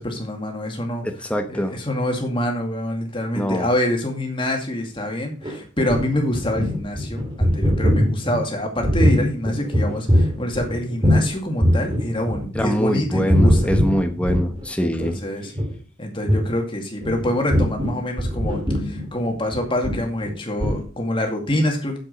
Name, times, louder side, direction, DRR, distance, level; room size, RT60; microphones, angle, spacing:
voice 1, 0.0-1.1 1.5-13.7 14.8-15.5 16.0-22.0, left 1 dB, 25° left, 2 dB, 2.2 m, -26 dB
voice 2, 1.0-1.8 3.3-3.7 12.5-15.2, equal, 5° left, 5 dB, 1.1 m, -23 dB
sound 1, 5.4-11.3 11.6-12.8 13.1-14.7 15.0-15.1 15.4-15.7 16.2-16.5 17.0-20.3 20.6-20.8, equal, 25° right, 2.8 m, -21 dB
7.6 x 7.5 x 5.3 m, 0.37 s
head